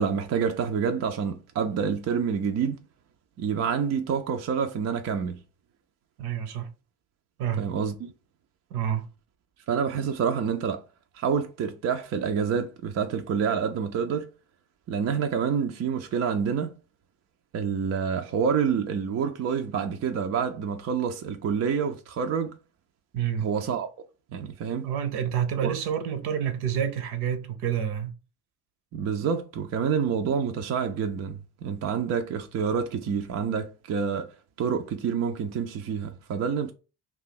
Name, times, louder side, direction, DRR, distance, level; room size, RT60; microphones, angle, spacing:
voice 1, 0.0-2.8 3.4-5.4 7.6-8.1 9.7-10.8 11.1-14.3 14.9-16.8 17.5-22.5 23.4-24.1 24.3-24.9 25.6-25.7 28.9-34.3 34.6-36.7, right 6 dB, 35° right, 0.5 m, -27 dB
voice 2, 6.2-6.7 7.4-7.7 8.7-9.1 23.1-23.5 24.8-28.1, right 9 dB, 60° right, 0.8 m, -28 dB
2.7 x 2.3 x 4.0 m
hypercardioid pair, 60°, 45 cm